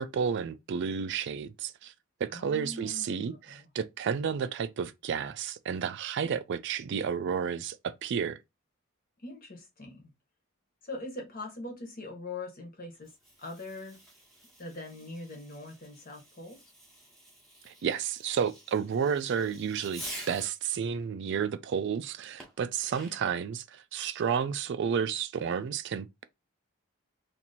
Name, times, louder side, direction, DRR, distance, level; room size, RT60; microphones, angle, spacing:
voice 1, 0.0-1.9 2.2-8.4 17.7-26.2, right 7 dB, 55° right, 0.3 m, -31 dB
voice 2, 2.3-3.7 9.2-10.1 10.8-13.1 13.4-14.0 14.6-16.7, left 2 dB, 40° left, 1.1 m, -42 dB
Fireworks, 12.9-20.6 22.4-23.4, right 1 dB, ahead, 0.9 m, -48 dB
2.9 x 2.5 x 4.1 m
head